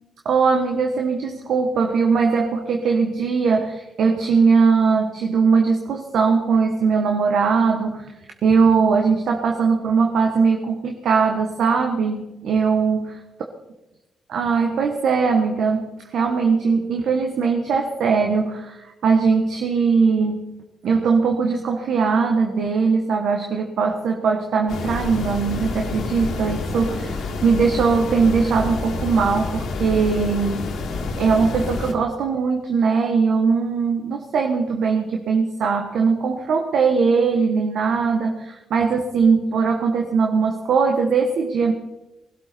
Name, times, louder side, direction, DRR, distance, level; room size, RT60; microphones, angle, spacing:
voice 1, 0.2-8.1 8.4-13.2 14.3-20.5 20.8-30.8 31.2-41.7, right 5 dB, 70° right, 4 dB, 1.3 m, -20 dB
sound 1, 24.7-31.9, left 3 dB, 75° left, 1.9 m, -28 dB
20.5 x 12.0 x 4.5 m, 0.99 s
hypercardioid pair, 45°, 0 cm